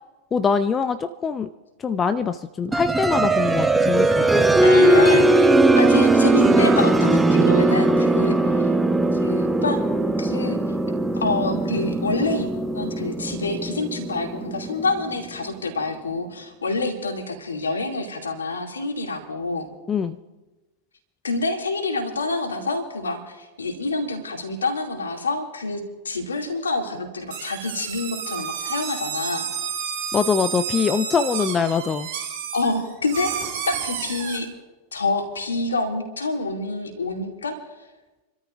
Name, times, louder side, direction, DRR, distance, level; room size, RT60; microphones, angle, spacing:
voice 1, 0.3-1.5 1.8-4.5 19.9-20.2 30.1-32.1, left 6 dB, 20° left, 11 dB, 0.6 m, -23 dB
sound 1, 2.7-15.2, right 2 dB, 10° right, 1.0 m, -19 dB
voice 2, 4.6-8.7 9.2-9.8 10.2-10.6 11.1-19.7 21.2-25.8 26.0-29.4 32.5-33.3 33.7-34.5 34.9-37.6, left 3 dB, 70° left, 2 dB, 2.8 m, -27 dB
sound 2, 27.3-34.4, right 8 dB, 55° right, 4.1 m, -31 dB
29.5 x 13.5 x 2.7 m, 1.1 s
figure-of-eight pair, 90°, 0 cm